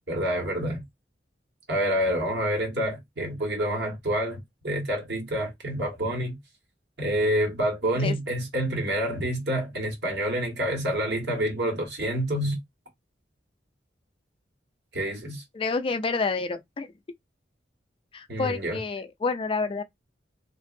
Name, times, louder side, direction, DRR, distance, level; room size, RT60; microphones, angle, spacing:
voice 1, 0.1-0.8 1.7-6.4 7.0-12.6 14.9-15.4 18.3-18.8, equal, 65° right, 1.4 m, -27 dB
voice 2, 15.5-16.9 18.1-19.8, left 4 dB, 30° left, 0.3 m, -28 dB
2.9 x 2.6 x 2.5 m
head